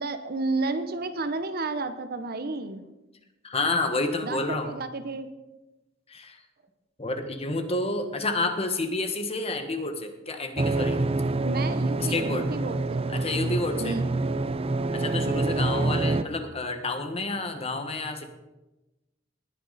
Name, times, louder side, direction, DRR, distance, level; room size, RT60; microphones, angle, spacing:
voice 1, 0.0-2.8 4.2-5.3 11.4-13.3 13.8-14.0, right 3 dB, 55° right, 10 dB, 0.9 m, -32 dB
voice 2, 3.4-4.7 6.1-6.4 7.0-11.0 12.0-12.5 13.1-14.0 14.9-18.2, left 2 dB, 30° left, 7 dB, 1.4 m, -29 dB
sound 1, 10.6-16.2, right 2 dB, 30° right, 0.6 m, -26 dB
19.5 x 9.7 x 4.1 m, 1.0 s
head